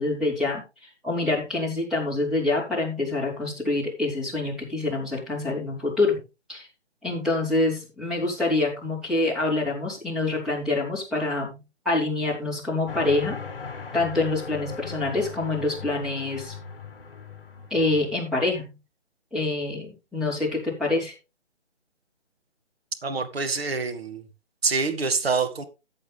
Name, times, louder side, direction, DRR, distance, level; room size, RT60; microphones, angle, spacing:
voice 1, 0.0-6.2 6.5-6.7 7.0-13.4 13.9-16.5 17.7-18.8 19.3-21.1, left 2 dB, ahead, 3.5 m, -26 dB
sound 1, 12.9-18.1, left 5 dB, 50° left, 1.6 m, -38 dB
voice 2, 23.0-24.3 24.6-25.7, right 4 dB, 55° right, 2.1 m, -26 dB
14.0 x 7.9 x 3.4 m
figure-of-eight pair, 155°, 35 cm